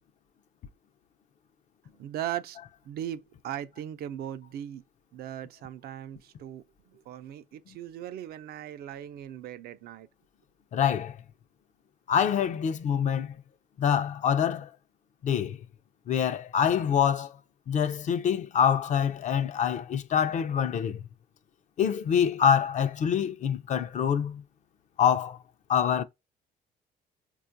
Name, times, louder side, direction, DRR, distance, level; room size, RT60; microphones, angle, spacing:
voice 1, 2.0-2.6 2.9-4.8 5.1-6.6 6.9-10.1, right 11 dB, 65° right, 0.5 m, -38 dB
voice 2, 10.7-11.2 12.1-13.4 13.8-14.7 15.2-15.6 16.1-17.4 17.7-21.0 21.8-24.4 25.0-25.4 25.7-26.0, left 8 dB, 45° left, 0.5 m, -25 dB
4.3 x 2.4 x 2.6 m
cardioid pair, 110°, 17 cm